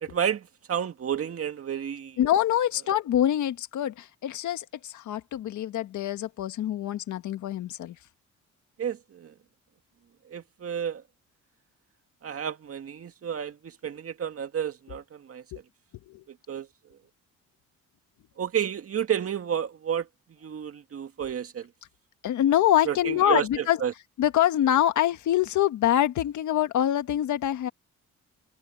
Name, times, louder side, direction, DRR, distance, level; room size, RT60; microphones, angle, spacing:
voice 1, 0.0-2.2 8.8-9.3 10.3-11.0 12.2-15.4 16.3-16.7 18.4-20.1 20.4-21.7 22.9-23.9, right 8 dB, 50° right, 2.1 m, -31 dB
voice 2, 2.2-8.0 15.5-15.6 16.1-16.2 22.2-23.8 24.2-27.7, left 11 dB, 75° left, 1.7 m, -25 dB
cardioid pair, 90°, 30 cm